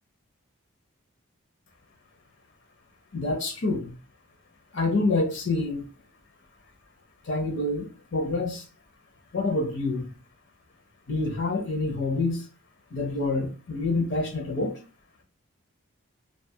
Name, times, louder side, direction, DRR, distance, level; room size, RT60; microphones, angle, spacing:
voice 1, 3.1-4.0 4.7-5.9 7.2-8.7 9.3-10.1 11.1-12.5 12.9-14.8, left 2 dB, 60° left, 0.5 m, -27 dB
2.5 x 2.3 x 2.6 m
head